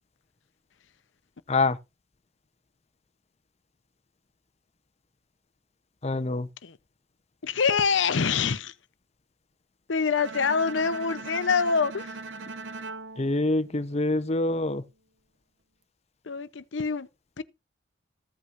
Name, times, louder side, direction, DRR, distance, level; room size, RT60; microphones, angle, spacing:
voice 1, 1.5-1.8 6.0-6.5 13.2-14.8, left 2 dB, 35° left, 0.8 m, -25 dB
voice 2, 7.4-8.7 9.9-12.2 16.3-17.1 17.4-17.5, left 5 dB, 75° left, 0.7 m, -25 dB
Bowed string instrument, 10.1-14.3, right 3 dB, 90° right, 1.0 m, -40 dB
15.0 x 8.8 x 2.5 m
head